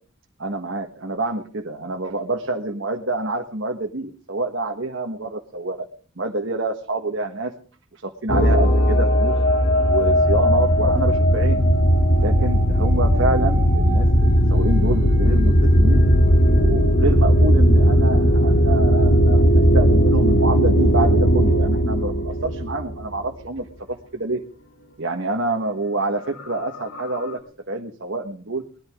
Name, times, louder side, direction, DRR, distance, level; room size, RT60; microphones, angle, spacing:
voice 1, 0.4-5.9 6.2-7.5 7.9-9.3 9.6-11.6 12.2-16.0 16.5-19.5 19.7-23.7 24.1-24.4 25.0-28.6, right 2 dB, 60° right, 3 dB, 1.5 m, -27 dB
sound 1, 8.3-23.2 26.4-26.5 26.7-27.3, equal, 70° left, 2.2 m, -17 dB
20.5 x 13.5 x 3.7 m, 0.41 s
head